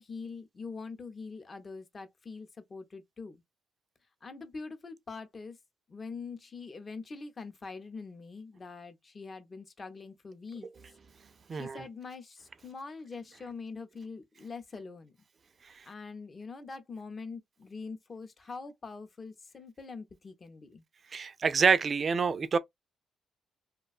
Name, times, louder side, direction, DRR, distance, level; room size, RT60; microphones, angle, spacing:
voice 1, 0.0-3.4 4.2-5.6 5.9-10.7 11.5-15.1 15.9-20.8, left 4 dB, 35° left, 0.6 m, -44 dB
voice 2, 11.5-11.8 21.1-22.6, right 5 dB, 40° right, 0.3 m, -26 dB
2.4 x 2.2 x 2.3 m
cardioid pair, 90°, 0 cm